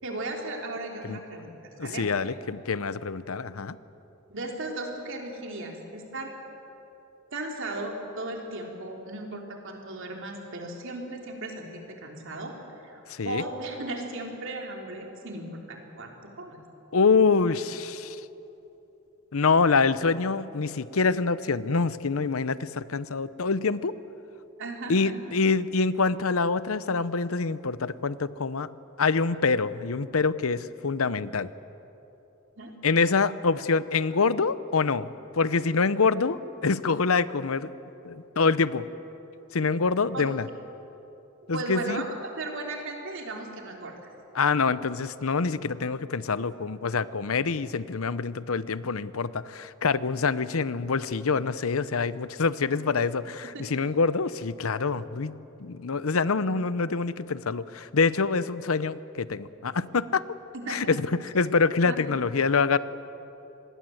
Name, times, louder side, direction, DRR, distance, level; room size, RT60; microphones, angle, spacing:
voice 1, 0.0-2.1 4.3-6.3 7.3-12.6 12.8-16.6 24.6-25.3 32.6-32.7 40.1-40.3 41.5-44.1 53.5-53.8 60.5-61.0 61.8-62.2, right 2 dB, 65° right, 1 dB, 3.6 m, -36 dB
voice 2, 1.8-3.8 13.1-13.4 16.9-18.2 19.3-23.9 24.9-28.7 29.0-31.5 32.8-35.1 35.3-37.7 38.0-38.8 39.5-40.5 41.5-42.0 44.3-55.3 55.6-60.2 60.7-62.8, left 4 dB, 80° left, 16 dB, 0.8 m, -25 dB
26.0 x 20.5 x 7.9 m, 3.0 s
head